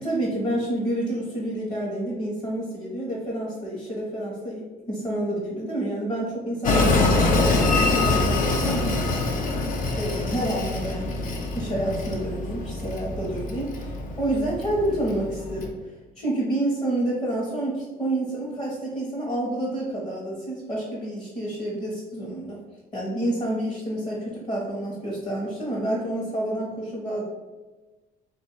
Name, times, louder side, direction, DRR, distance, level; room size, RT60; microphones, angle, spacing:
voice 1, 0.0-9.2 9.9-15.7 16.1-22.6 22.9-27.2, right 1 dB, 30° left, -5 dB, 1.1 m, -29 dB
Train, 6.6-15.7, left 2 dB, 55° left, 0.7 m, -25 dB
3.3 x 2.6 x 4.4 m, 1.2 s
cardioid pair, 110°, 17 cm